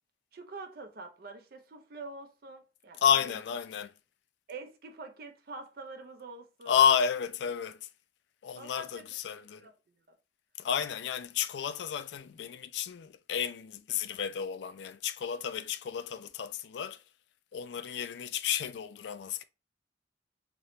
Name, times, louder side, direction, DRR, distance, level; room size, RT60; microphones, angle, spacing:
voice 1, 0.3-3.4 4.5-6.7 8.5-9.1 9.6-9.7 10.1-10.2, right 3 dB, 55° right, 0.6 m, -45 dB
voice 2, 3.0-3.9 6.7-7.8 8.4-9.6 10.6-17.0 17.5-19.4, left 8 dB, 70° left, 0.3 m, -31 dB
3.0 x 2.8 x 3.1 m
head